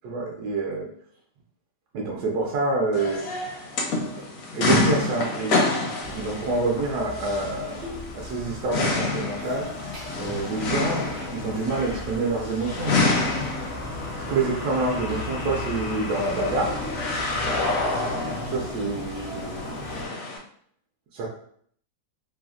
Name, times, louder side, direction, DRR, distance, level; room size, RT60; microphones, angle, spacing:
voice 1, 0.0-0.9 1.9-3.3 4.5-5.7 6.1-7.8 8.1-9.7 10.2-13.1 14.3-16.8 18.4-20.2 21.1-21.3, right 3 dB, 70° right, -2 dB, 1.0 m, -27 dB
sound 1, 2.9-20.4, left 3 dB, 70° left, 0.8 m, -28 dB
Bathtub (filling or washing), 6.0-20.1, left 1 dB, 50° right, 0.5 m, -38 dB
3.2 x 2.1 x 2.4 m, 0.62 s
omnidirectional pair, 2.0 m